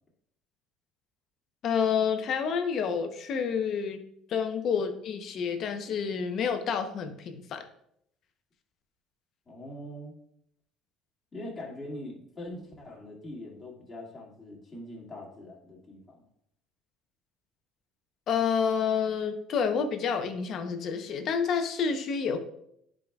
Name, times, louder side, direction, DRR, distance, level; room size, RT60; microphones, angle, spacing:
voice 1, 1.6-4.0 4.3-7.7 18.3-22.4, left 6 dB, 50° left, 7 dB, 0.8 m, -29 dB
voice 2, 9.5-10.1 11.3-16.2, left 1 dB, 25° left, -3 dB, 2.0 m, -42 dB
10.0 x 5.0 x 2.3 m, 0.72 s
cardioid pair, 130°, 0 cm